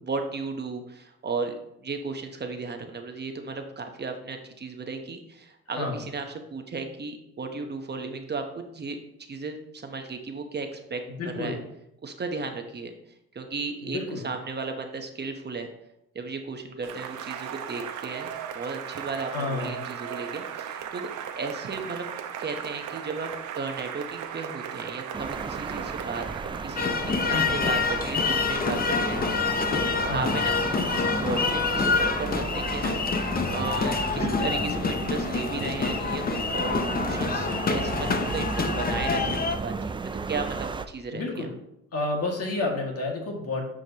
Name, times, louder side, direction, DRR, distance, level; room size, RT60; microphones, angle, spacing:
voice 1, 0.1-11.6 12.0-12.9 13.3-15.7 16.1-22.1 22.4-23.3 23.6-26.2 26.6-39.7 40.0-41.5, right 4 dB, 35° right, 5 dB, 0.9 m, -35 dB
voice 2, 11.2-11.6 13.8-14.2 19.3-19.8 27.3-27.6 30.0-30.3 34.1-34.5 41.1-41.5 41.9-43.6, left 2 dB, 55° left, 0 dB, 2.0 m, -30 dB
Cheering / Applause, 16.8-26.9, right 8 dB, 75° right, 0.8 m, -37 dB
sound 1, 25.1-40.9, right 4 dB, 15° right, 0.3 m, -34 dB
sound 2, 26.8-39.6, left 4 dB, 30° left, 0.7 m, -27 dB
9.2 x 5.2 x 2.9 m, 0.82 s
cardioid pair, 90°, 30 cm